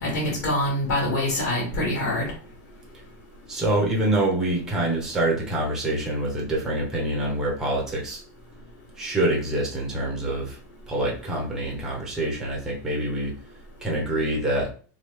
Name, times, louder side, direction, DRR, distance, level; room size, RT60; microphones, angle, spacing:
voice 1, 0.0-2.3, left 1 dB, 70° left, -2 dB, 1.5 m, -25 dB
voice 2, 3.5-8.2 9.0-10.6 10.9-13.3 13.8-14.7, right 1 dB, 5° right, -3 dB, 0.8 m, -26 dB
3.2 x 2.3 x 3.2 m, 0.41 s
supercardioid pair, 175°, 9 cm